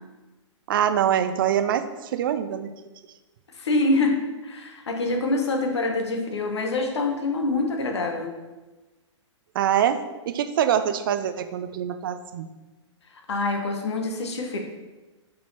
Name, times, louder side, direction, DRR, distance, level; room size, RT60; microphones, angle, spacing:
voice 1, 0.7-2.7 9.5-10.0 10.3-12.5, right 9 dB, 45° right, 10 dB, 0.5 m, -24 dB
voice 2, 3.5-8.3 13.3-14.6, left 2 dB, 60° left, 4 dB, 1.1 m, -25 dB
7.4 x 4.5 x 4.1 m, 1.2 s
figure-of-eight pair, 110°, 16 cm